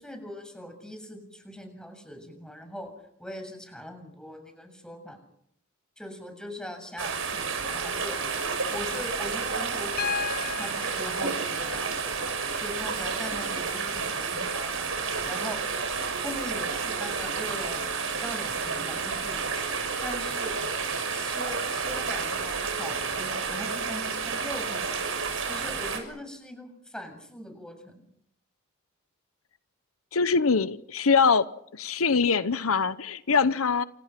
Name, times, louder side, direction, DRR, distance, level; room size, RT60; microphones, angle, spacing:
voice 1, 0.0-2.9 3.2-5.2 6.0-8.3 8.7-10.1 10.5-12.1 12.6-14.9 15.2-15.6 16.2-20.6 21.1-28.0, left 1 dB, 5° left, 5 dB, 7.0 m, -41 dB
sound 1, 7.0-26.0, right 5 dB, 75° right, 6.4 m, -30 dB
Piano, 10.0-14.0 15.5-15.6, left 7 dB, 45° left, 1.0 m, -37 dB
voice 2, 30.1-31.4 31.7-33.8, left 5 dB, 90° left, 14 dB, 1.0 m, -23 dB
29.0 x 27.0 x 6.0 m, 0.73 s
head